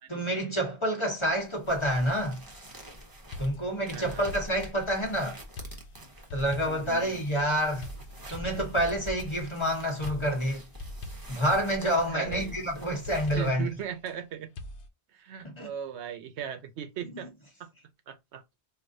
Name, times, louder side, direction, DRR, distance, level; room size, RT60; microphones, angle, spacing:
voice 1, 0.1-2.4 3.4-5.4 6.3-7.9 8.3-10.6 11.3-13.7 15.4-15.7 17.0-17.2, equal, 30° left, 1.0 m, -28 dB
sound 1, 1.2-13.5, left 1 dB, 20° right, 0.8 m, -46 dB
sound 2, 3.3-5.2 5.6-7.0 7.8-9.6 10.1-11.5 12.3-14.2 14.6-14.9, left 1 dB, 85° left, 0.9 m, -43 dB
voice 2, 3.9-4.3 6.7-7.2 12.1-12.6 13.4-14.5 15.1-17.3 17.6-17.7 18.1-18.4, right 9 dB, 80° right, 0.9 m, -38 dB
4.7 x 2.5 x 2.6 m
omnidirectional pair, 1.1 m